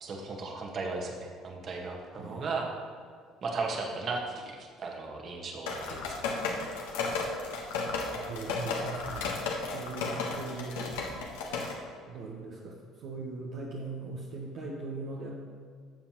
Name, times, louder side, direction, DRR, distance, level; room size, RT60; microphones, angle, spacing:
voice 1, 0.0-2.7 3.4-6.2, right 3 dB, 45° right, 1 dB, 1.6 m, -36 dB
sound 1, 5.7-11.7, left 4 dB, 75° left, 1.2 m, -34 dB
voice 2, 8.0-9.3 9.7-10.9 12.1-15.3, right 3 dB, 65° right, -3 dB, 1.1 m, -40 dB
12.5 x 7.2 x 3.1 m, 2.1 s
hypercardioid pair, 60°, 0 cm